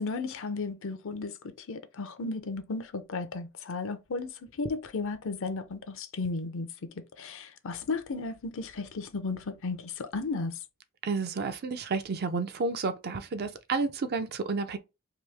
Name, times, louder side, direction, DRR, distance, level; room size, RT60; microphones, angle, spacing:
voice 1, 0.0-10.6, left 3 dB, 65° left, 0.6 m, -34 dB
voice 2, 11.0-14.8, right 4 dB, 50° right, 0.5 m, -31 dB
3.0 x 2.7 x 3.4 m
head